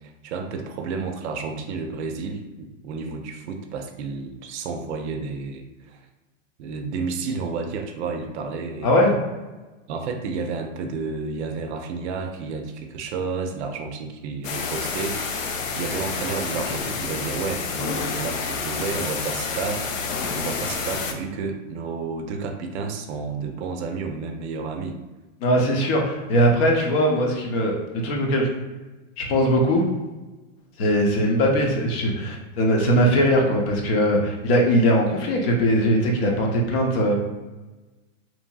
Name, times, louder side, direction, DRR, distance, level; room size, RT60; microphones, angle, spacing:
voice 1, 0.0-6.0 6.6-9.1 9.9-15.4 15.8-25.0, right 4 dB, 60° right, 5 dB, 0.5 m, -31 dB
voice 2, 8.8-9.1 25.4-28.5 29.2-29.8 30.8-37.1, equal, 50° left, 0 dB, 0.8 m, -20 dB
sound 1, 14.4-21.1, left 5 dB, 80° left, 0.6 m, -29 dB
2.9 x 2.6 x 2.2 m, 1.2 s
hypercardioid pair, 130°, 39 cm